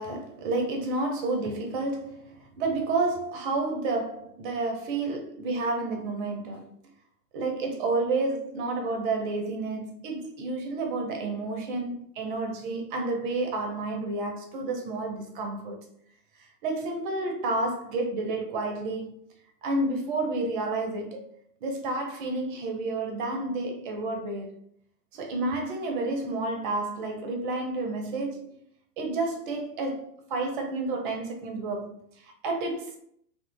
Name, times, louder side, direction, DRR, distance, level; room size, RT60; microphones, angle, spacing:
voice 1, 0.0-6.7 7.3-15.9 16.6-19.2 19.6-21.3 21.6-24.5 25.1-28.5 29.0-32.0 32.4-33.0, right 2 dB, 35° right, 0.5 m, -30 dB
2.8 x 2.4 x 3.2 m
figure-of-eight pair, 105°, 49 cm